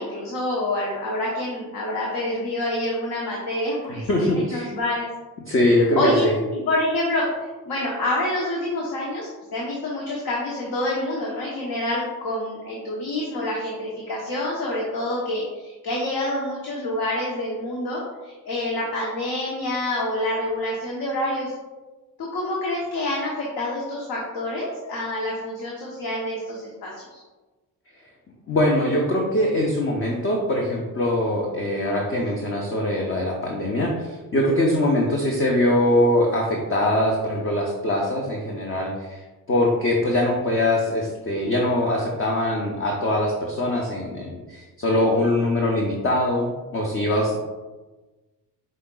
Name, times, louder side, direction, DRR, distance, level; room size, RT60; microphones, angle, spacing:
voice 1, 0.0-4.1 4.5-5.1 5.9-6.2 6.5-21.5 22.2-27.2 34.9-35.2, left 1 dB, 50° left, -3 dB, 1.1 m, -27 dB
voice 2, 3.9-4.7 5.5-6.3 28.5-39.2 39.5-47.4, left 1 dB, 25° left, -1 dB, 0.8 m, -22 dB
5.5 x 3.7 x 2.3 m, 1.2 s
hypercardioid pair, 50°, 49 cm